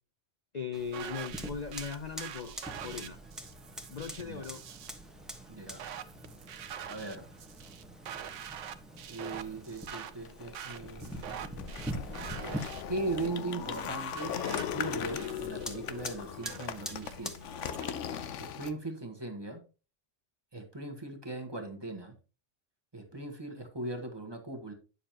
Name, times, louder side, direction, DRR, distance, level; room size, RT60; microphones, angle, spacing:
voice 1, 0.5-2.5 2.8-3.2 3.9-4.6, left 6 dB, 45° left, 6 dB, 0.6 m, -38 dB
Fire, 0.7-17.5, equal, ahead, 1.2 m, -45 dB
sound 1, 0.9-17.9, right 9 dB, 75° right, 1.0 m, -46 dB
voice 2, 5.5-5.8 6.9-7.3 9.0-11.7 12.9-17.4 18.4-19.6 20.5-22.1 22.9-24.7, right 2 dB, 20° right, 2 dB, 1.3 m, -39 dB
sound 2, 10.1-18.7, left 8 dB, 75° left, 1.0 m, -38 dB
9.8 x 6.9 x 2.9 m, 0.33 s
omnidirectional pair, 1.3 m